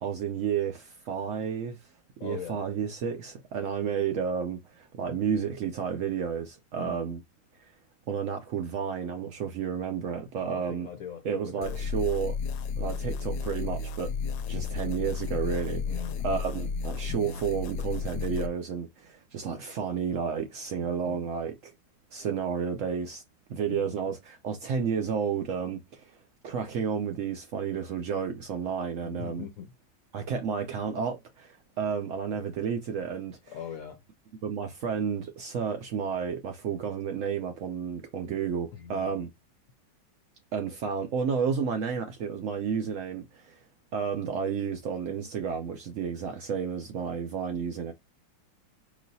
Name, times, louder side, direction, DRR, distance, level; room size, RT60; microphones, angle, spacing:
voice 1, 0.0-1.9 2.2-7.2 7.6-7.7 8.1-10.9 11.2-12.4 12.8-14.1 14.5-21.7 22.1-23.2 23.5-26.2 26.4-29.4 30.1-33.5 34.4-39.3 40.5-43.7 43.9-47.9, right 7 dB, 75° right, 0.7 m, -31 dB
voice 2, 2.2-2.6 6.8-7.2 10.4-11.8 15.8-16.2 20.8-21.3 23.7-24.1 29.0-29.7 33.5-34.0 38.7-39.2, left 8 dB, 65° left, 0.9 m, -41 dB
sound 1, 11.6-18.5, left 5 dB, 90° left, 1.3 m, -32 dB
4.9 x 3.1 x 2.7 m
omnidirectional pair, 2.0 m